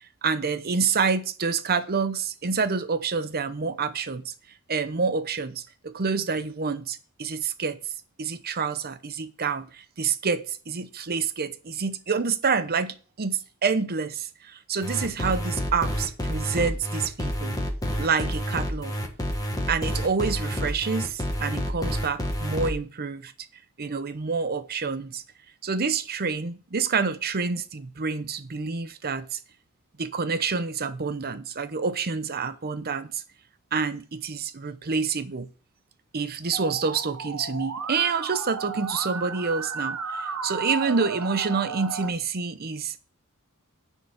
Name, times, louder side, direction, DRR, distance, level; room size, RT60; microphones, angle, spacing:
voice 1, 0.2-4.3 4.7-7.8 8.2-17.6 18.0-18.9 19.7-23.3 23.8-25.2 25.6-29.4 30.0-33.2 33.7-35.5 36.1-43.0, right 5 dB, 45° right, 0.8 m, -28 dB
sound 1, 14.8-22.7, equal, 15° left, 1.4 m, -29 dB
Musical instrument, 36.5-42.1, right 5 dB, 85° right, 1.0 m, -34 dB
9.9 x 4.6 x 5.8 m
head